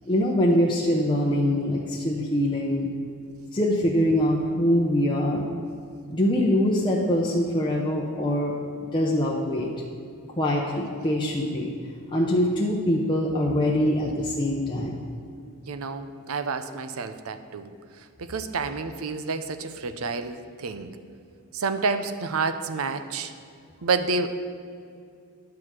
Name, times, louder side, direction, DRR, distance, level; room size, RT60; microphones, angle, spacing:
voice 1, 0.1-2.9 3.5-5.5 6.1-8.5 8.8-9.7 10.4-11.7 12.1-15.0, left 1 dB, 20° left, -3 dB, 0.7 m, -23 dB
voice 2, 15.7-17.7 18.2-20.9 21.5-23.3 23.8-24.3, right 4 dB, 75° right, 9 dB, 0.6 m, -29 dB
9.9 x 4.8 x 7.4 m, 2.3 s
head